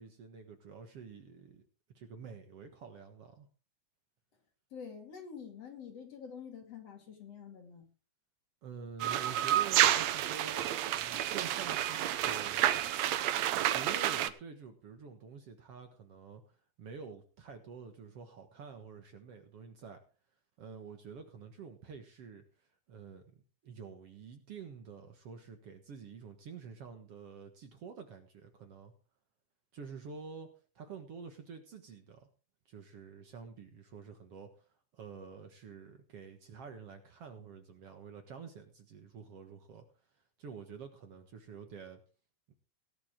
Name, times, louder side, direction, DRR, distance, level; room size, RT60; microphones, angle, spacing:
voice 1, 0.0-1.7 2.0-3.5 8.6-12.8 13.7-20.0 20.6-28.9 29.7-30.5 30.8-32.3 32.7-39.8 40.4-42.0 42.5-42.6, right 6 dB, 55° right, 6 dB, 2.1 m, -48 dB
voice 2, 4.7-7.9, left 6 dB, 50° left, 4 dB, 3.3 m, -47 dB
sound 1, 9.0-14.3, right 12 dB, 70° right, 1.8 m, -30 dB
17.5 x 11.0 x 3.7 m, 0.36 s
omnidirectional pair, 3.7 m